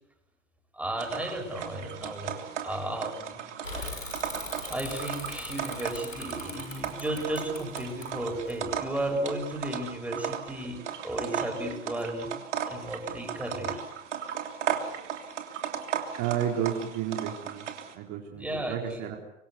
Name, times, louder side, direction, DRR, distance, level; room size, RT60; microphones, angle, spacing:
voice 1, 0.7-3.4 3.7-4.1 4.7-12.3 12.7-13.8 18.4-19.0, right 1 dB, 5° right, 3 dB, 7.8 m, -34 dB
sound 1, 1.0-17.9, right 8 dB, 65° right, 3.3 m, -36 dB
Bicycle / Mechanisms, 3.6-9.1, left 2 dB, 90° left, 6.8 m, -40 dB
voice 2, 16.2-19.2, right 10 dB, 45° right, 1 dB, 4.1 m, -32 dB
26.0 x 24.0 x 8.3 m, 0.85 s
figure-of-eight pair, 80°, 37 cm